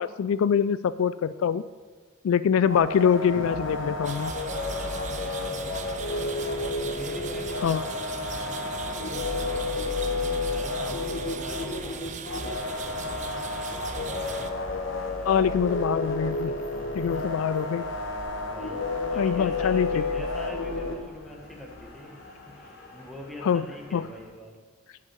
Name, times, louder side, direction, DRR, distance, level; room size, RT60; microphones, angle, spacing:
voice 1, 0.0-1.6 2.2-4.3 7.6-7.8 15.2-16.5 17.0-17.8 19.2-20.0 23.4-23.6 23.9-24.0, left 7 dB, 80° left, 15 dB, 0.3 m, -24 dB
sound 1, 2.6-20.9, left 2 dB, 65° left, 1.2 m, -31 dB
sound 2, 4.0-14.5, right 5 dB, 35° right, 0.6 m, -39 dB
voice 2, 5.1-5.8 6.8-9.8 10.0-14.5 15.1-15.5 16.7-17.5 18.5-22.2 22.5-24.6, left 1 dB, ahead, -1 dB, 1.2 m, -45 dB
sound 3, 5.8-24.2, left 1 dB, 45° left, 2.9 m, -52 dB
8.3 x 6.3 x 7.7 m, 1.5 s
head